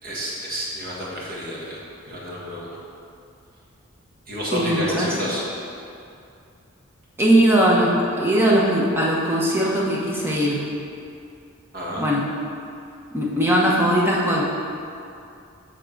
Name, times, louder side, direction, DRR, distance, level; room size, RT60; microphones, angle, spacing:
voice 1, 0.0-2.7 4.3-5.4 11.7-12.0, equal, 40° right, -5 dB, 1.5 m, -30 dB
voice 2, 4.5-5.2 7.2-10.6 12.0-12.2 13.1-14.5, right 1 dB, 10° right, -4 dB, 0.9 m, -19 dB
7.3 x 3.7 x 6.5 m, 2.5 s
head